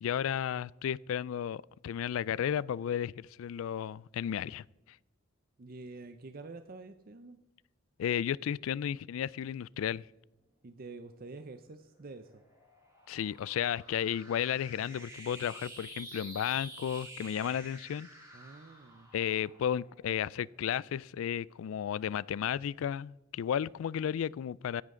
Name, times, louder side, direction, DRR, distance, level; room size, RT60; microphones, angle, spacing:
voice 1, 0.0-4.6 8.0-10.0 13.1-18.1 19.1-24.8, left 9 dB, 85° left, 0.3 m, -33 dB
voice 2, 5.6-7.4 10.6-12.4 18.3-19.1, right 3 dB, 45° right, 0.6 m, -47 dB
sound 1, 12.0-20.7, right 1 dB, 15° right, 5.0 m, -50 dB
15.5 x 10.5 x 3.7 m
head